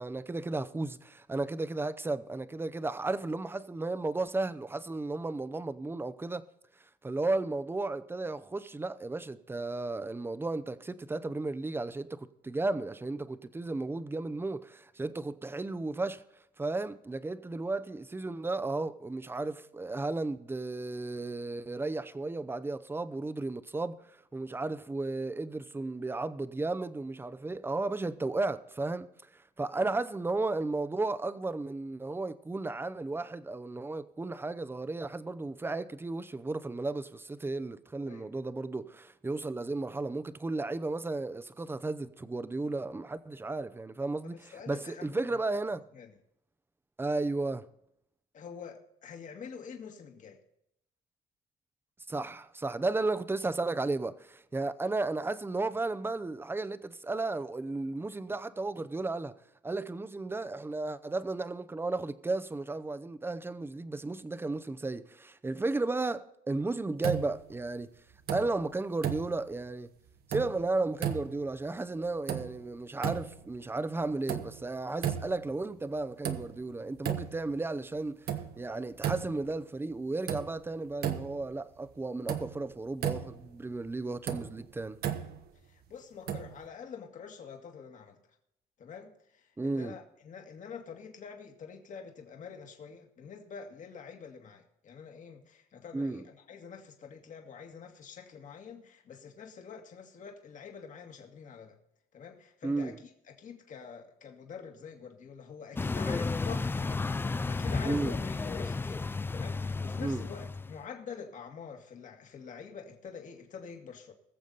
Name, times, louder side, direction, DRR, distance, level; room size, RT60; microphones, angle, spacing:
voice 1, 0.0-6.5 7.0-16.2 16.6-24.0 24.3-45.8 47.0-47.7 52.1-59.3 59.6-68.0 68.3-70.0 70.3-78.3 78.6-85.0 89.6-90.0 95.9-96.2 102.6-103.0 107.8-108.2 110.0-110.2, right 2 dB, 15° right, 0.8 m, -34 dB
voice 2, 44.2-45.4 46.0-46.1 48.3-50.4 85.7-88.2 88.8-101.8 102.1-102.9 103.3-109.0 109.3-114.1, left 6 dB, 50° left, 2.0 m, -46 dB
sound 1, 67.0-67.7 68.1-68.7 69.0-69.7 70.1-70.7 71.0-71.6 72.0-72.7 73.0-73.6 74.0-74.7 75.0-75.6 76.0-76.7 77.0-77.6 78.0-79.5 79.9-80.0 80.3-81.5 81.8-81.9 82.3-83.5 84.0-85.5 86.3-86.7, right 9 dB, 65° right, 1.3 m, -35 dB
sound 2, 105.8-110.8, left 3 dB, 15° left, 0.3 m, -33 dB
21.0 x 7.2 x 4.0 m
cardioid pair, 110°, 17 cm